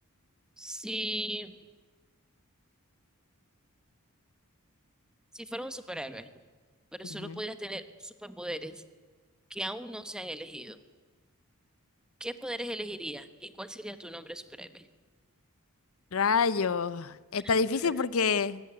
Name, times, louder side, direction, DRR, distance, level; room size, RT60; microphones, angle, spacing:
voice 1, 0.6-1.6 5.3-6.3 6.9-8.8 9.5-10.8 12.2-14.9 17.4-17.5 17.8-17.9, right 1 dB, 5° right, 11 dB, 1.2 m, -38 dB
voice 2, 7.1-7.4 16.1-18.6, left 5 dB, 70° left, 17 dB, 0.6 m, -27 dB
23.0 x 18.5 x 9.6 m, 1.4 s
head